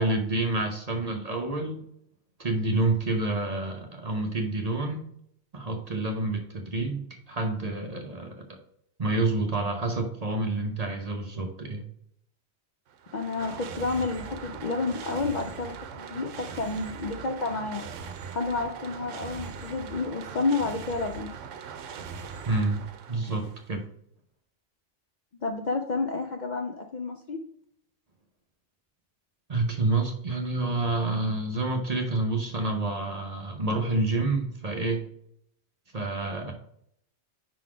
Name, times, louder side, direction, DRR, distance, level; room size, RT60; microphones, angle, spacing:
voice 1, 0.0-1.8 2.4-5.1 5.5-8.6 9.0-11.9 22.5-22.8 23.1-23.8 29.5-35.0 35.9-36.5, right 2 dB, 40° right, 3 dB, 0.7 m, -28 dB
sound 1, 12.9-23.7, right 6 dB, 85° right, 1.0 m, -40 dB
voice 2, 13.1-17.9 18.3-21.3 25.4-27.4, left 3 dB, 55° left, 4 dB, 0.5 m, -30 dB
5.0 x 4.0 x 4.7 m, 0.70 s
omnidirectional pair, 1.2 m